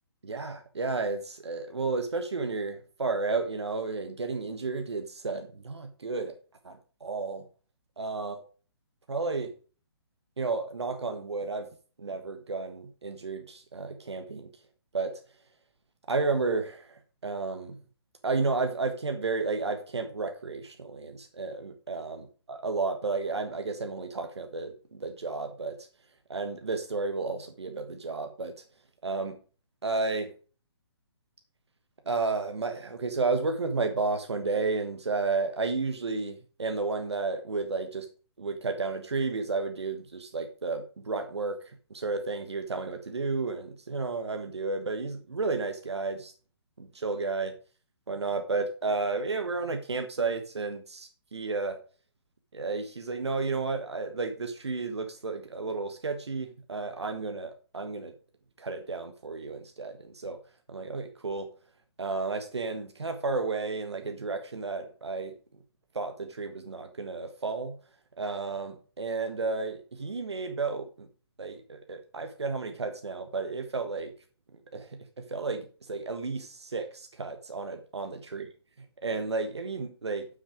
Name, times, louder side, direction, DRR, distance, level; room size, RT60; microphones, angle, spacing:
voice 1, 0.2-6.3 6.6-7.5 8.0-8.4 9.1-9.5 10.4-11.7 12.0-14.5 14.9-15.2 16.1-17.8 18.2-22.2 22.5-25.9 26.3-28.5 29.0-29.4 29.8-30.3 32.0-38.1 38.4-46.3 46.8-47.5 48.1-51.8 52.5-58.1 58.6-60.4 60.7-61.5 62.0-65.3 65.9-67.8 68.2-71.1 71.4-74.1 74.7-78.5 79.0-80.3, right 3 dB, 90° right, 6 dB, 1.3 m, -32 dB
7.6 x 6.5 x 5.0 m, 0.38 s
hypercardioid pair, 145°, 14 cm